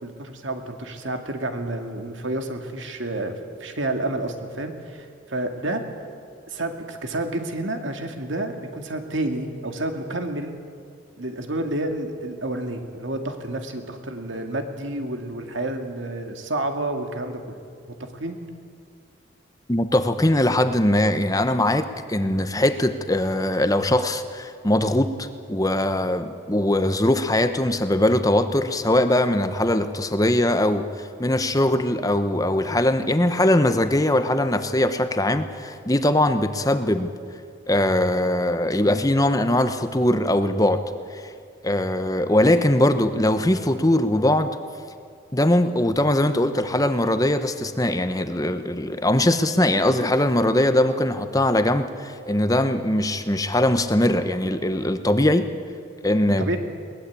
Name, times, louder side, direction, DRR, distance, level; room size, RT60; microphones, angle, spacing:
voice 1, 0.0-3.3 3.6-5.8 6.5-10.5 11.2-17.4 18.1-18.4 56.4-56.6, right 1 dB, 70° right, 5 dB, 2.2 m, -29 dB
voice 2, 19.7-37.1 37.7-40.8 41.1-41.2 41.6-44.6 45.3-55.5 56.0-56.5, left 1 dB, 15° left, 9 dB, 1.0 m, -21 dB
22.0 x 19.5 x 8.5 m, 2.2 s
head